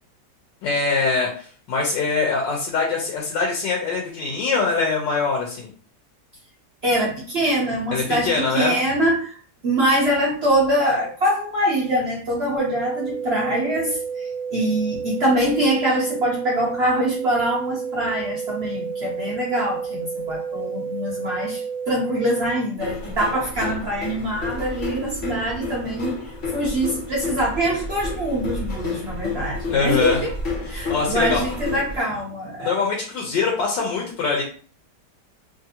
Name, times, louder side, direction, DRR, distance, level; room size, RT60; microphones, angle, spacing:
voice 1, 0.6-5.7 7.9-8.8 29.7-30.2 30.7-31.4 32.6-34.4, left 4 dB, 90° left, -1 dB, 1.4 m, -23 dB
voice 2, 6.8-9.4 9.6-26.2 26.5-30.3 30.7-32.8, right 1 dB, 55° right, -4 dB, 0.7 m, -24 dB
sound 1, 12.6-22.6, right 6 dB, 70° left, 1.4 m, -30 dB
sound 2, 22.8-32.0, left 3 dB, 50° left, 1.3 m, -30 dB
3.2 x 2.4 x 2.7 m, 0.43 s
omnidirectional pair, 1.9 m